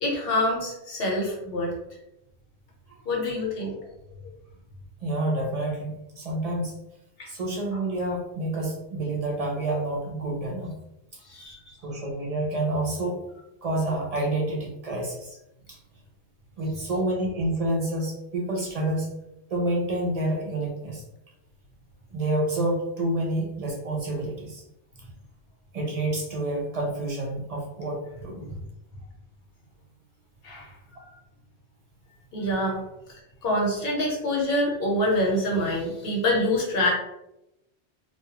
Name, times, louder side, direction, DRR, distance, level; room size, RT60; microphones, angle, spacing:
voice 1, 0.0-1.8 3.1-3.7 7.2-7.3 11.2-11.6 30.4-31.1 32.3-32.8 33.4-36.9, left 1 dB, 60° left, -2 dB, 0.9 m, -26 dB
voice 2, 5.0-6.7 7.3-10.7 11.1-11.2 11.8-13.2 13.6-15.4 15.7-15.8 16.6-19.1 19.5-21.0 22.1-24.6 25.7-28.5, right 1 dB, 70° right, -1 dB, 0.3 m, -28 dB
2.2 x 2.1 x 2.7 m, 0.86 s
omnidirectional pair, 1.2 m